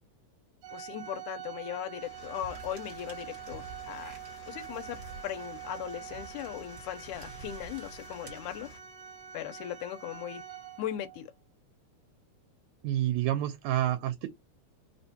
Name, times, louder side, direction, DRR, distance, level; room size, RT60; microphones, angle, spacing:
Organ, 0.6-11.2, right 9 dB, 65° right, 1.3 m, -45 dB
voice 1, 0.7-4.2 4.5-8.7 9.3-10.4 10.8-11.3, left 11 dB, 85° left, 2.1 m, -38 dB
sound 1, 1.9-8.8, left 2 dB, 70° left, 1.8 m, -53 dB
sound 2, 2.4-9.1, right 4 dB, 45° right, 1.5 m, -51 dB
voice 2, 12.8-14.3, right 13 dB, 80° right, 2.0 m, -28 dB
4.7 x 2.1 x 2.7 m
omnidirectional pair, 3.4 m